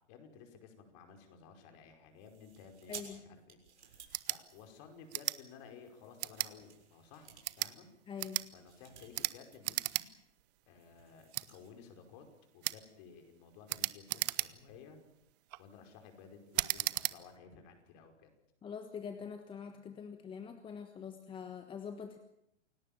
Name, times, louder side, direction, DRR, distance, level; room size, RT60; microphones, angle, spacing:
voice 1, 0.1-7.9 8.5-10.1 10.7-12.3 12.5-15.0 15.6-18.3, left 6 dB, 40° left, 5 dB, 5.3 m, -55 dB
sound 1, 2.2-5.2 5.8-9.7 10.0-10.1 10.4-11.7, right 7 dB, 70° right, 7.0 m, -55 dB
voice 2, 2.9-3.2 8.1-8.4 18.6-22.2, left 6 dB, 15° left, 7 dB, 1.4 m, -44 dB
sound 2, 4.1-4.4 5.1-5.4 6.2-6.5 7.3-7.7 8.2-8.5 9.1-9.3 9.6-10.1 10.4-10.5 11.3-11.5 12.6-12.8 13.7-14.7 15.3-15.6 16.5-17.2, right 20 dB, 35° right, 0.9 m, -35 dB
28.5 x 17.5 x 7.3 m, 0.81 s
hypercardioid pair, 125°, 35 cm